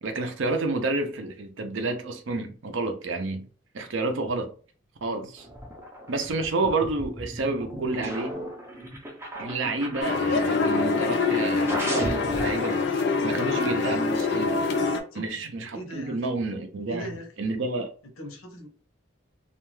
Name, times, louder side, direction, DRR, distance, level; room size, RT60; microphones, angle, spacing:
voice 1, 0.0-3.5 3.7-4.5 5.0-5.5 6.1-8.4 9.4-12.9 13.2-14.6 15.1-17.1 17.4-17.9, right 3 dB, 60° right, 0.5 m, -29 dB
sound 1, 5.4-11.1 11.7-12.8, equal, 10° right, 0.5 m, -35 dB
sound 2, 10.0-15.0, left 4 dB, 50° left, 0.4 m, -25 dB
voice 2, 15.7-16.2 16.9-17.3 18.2-18.7, equal, 75° left, 0.8 m, -38 dB
2.4 x 2.2 x 3.1 m
head